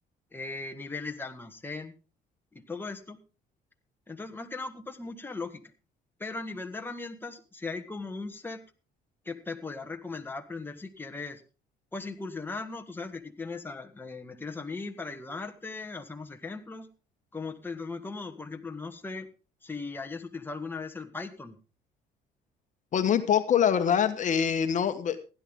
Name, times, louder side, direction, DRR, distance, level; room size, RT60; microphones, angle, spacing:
voice 1, 0.3-1.9 2.5-3.2 4.1-5.6 6.2-8.6 9.2-11.4 11.9-16.9 17.3-19.3 19.6-21.6, left 3 dB, 10° left, 5 dB, 1.6 m, -38 dB
voice 2, 22.9-25.2, left 8 dB, 45° left, 8 dB, 1.3 m, -24 dB
16.0 x 11.0 x 3.7 m, 0.33 s
cardioid pair, 110°, 17 cm